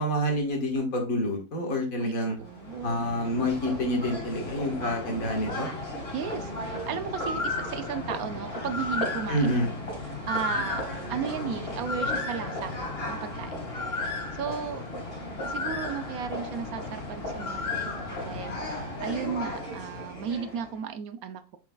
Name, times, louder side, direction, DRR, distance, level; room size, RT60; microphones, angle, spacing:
voice 1, 0.0-2.4 2.8-5.7 9.3-9.7, equal, 60° left, 2.0 m, -28 dB
voice 2, 2.0-3.1 6.1-9.7 10.1-10.8 11.1-12.8 13.1-13.7 14.3-14.9 15.4-21.6, right 7 dB, 70° right, 1.0 m, -35 dB
sound 1, 2.3-20.7, left 2 dB, 40° left, 2.2 m, -34 dB
7.2 x 5.7 x 2.3 m
omnidirectional pair, 1.7 m